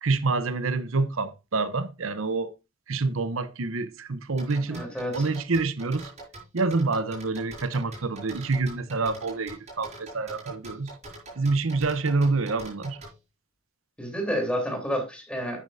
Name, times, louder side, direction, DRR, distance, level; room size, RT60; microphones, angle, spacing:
voice 1, 0.0-2.5 2.9-4.9 5.1-6.1 6.5-10.9 11.4-13.0, right 3 dB, 85° right, 0.8 m, -27 dB
sound 1, 4.4-13.1, right 2 dB, 35° right, 5.7 m, -43 dB
voice 2, 4.7-5.2 14.0-15.6, equal, 5° left, 3.4 m, -30 dB
11.0 x 9.2 x 2.6 m
head